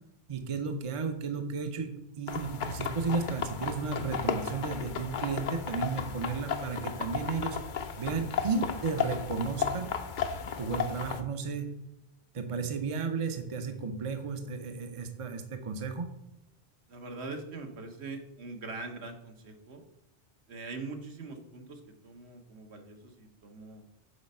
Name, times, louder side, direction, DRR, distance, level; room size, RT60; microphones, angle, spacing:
voice 1, 0.3-7.6 8.0-9.9 10.6-11.7 12.3-16.1, right 4 dB, 35° right, 6 dB, 0.6 m, -33 dB
sound 1, 2.3-11.2, left 7 dB, 55° left, 0.7 m, -34 dB
voice 2, 16.9-19.8 20.5-23.8, right 3 dB, 70° right, 4 dB, 1.3 m, -42 dB
6.9 x 4.1 x 5.4 m, 0.87 s
omnidirectional pair, 1.2 m